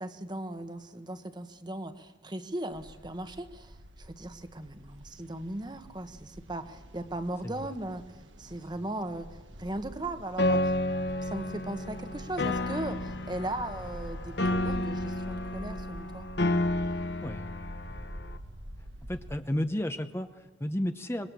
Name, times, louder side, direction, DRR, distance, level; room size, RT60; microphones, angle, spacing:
voice 1, 0.0-8.0 8.4-10.8 11.2-16.3, right 1 dB, 25° right, 9 dB, 1.2 m, -38 dB
sound 1, 2.7-19.4, equal, 75° right, 1.5 m, -46 dB
Piano, 10.4-18.4, left 1 dB, 60° left, 1.2 m, -31 dB
voice 2, 17.2-17.6 17.9-18.1 19.1-21.3, left 1 dB, 15° left, 8 dB, 0.8 m, -33 dB
25.5 x 22.0 x 7.5 m, 1.3 s
head